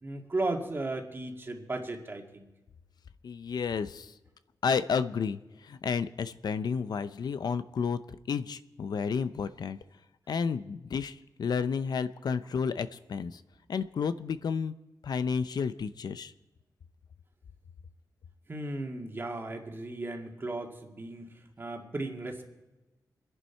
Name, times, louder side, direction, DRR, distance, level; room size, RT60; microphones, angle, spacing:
voice 1, 0.0-2.5 18.5-22.4, right 2 dB, 30° right, 2 dB, 2.1 m, -36 dB
voice 2, 3.2-4.1 4.6-9.8 10.3-13.4 13.7-14.7 15.0-16.3, left 6 dB, 75° left, 13 dB, 0.6 m, -31 dB
26.0 x 11.0 x 4.5 m, 1.1 s
wide cardioid pair, 130°, 7 cm